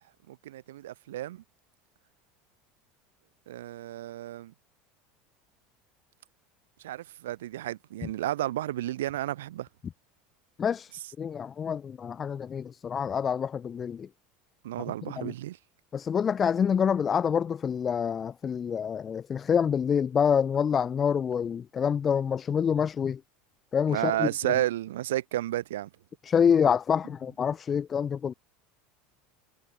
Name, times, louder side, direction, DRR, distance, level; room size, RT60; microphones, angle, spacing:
voice 1, 0.3-1.4 3.5-4.5 6.8-9.7 14.6-15.6 23.9-25.9, right 14 dB, 80° right, 0.6 m, -32 dB
voice 2, 10.6-14.1 14.8-15.3 15.9-23.2 23.7-24.5 26.2-28.3, left 7 dB, 30° left, 0.8 m, -27 dB
hypercardioid pair, 90°, 0 cm